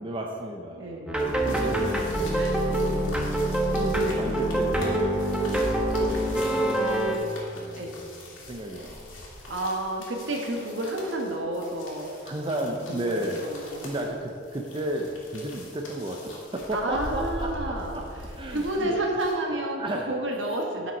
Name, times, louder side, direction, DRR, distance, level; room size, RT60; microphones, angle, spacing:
voice 1, 0.0-1.1 1.6-2.0 2.7-3.2 3.7-8.0 8.3-9.2 12.2-18.0 18.4-19.1 19.7-20.1, right 1 dB, 25° right, 1 dB, 0.6 m, -33 dB
voice 2, 0.8-1.7 2.3-2.7 7.8-7.9 9.5-12.2 12.9-14.1 16.7-18.0 18.5-19.8 20.1-20.9, right 1 dB, 70° right, 0 dB, 1.5 m, -31 dB
sound 1, 1.1-7.2, right 1 dB, 5° right, 0.9 m, -25 dB
sound 2, 1.2-19.3, left 1 dB, 85° left, 2.2 m, -43 dB
9.7 x 5.9 x 5.4 m, 2.5 s
head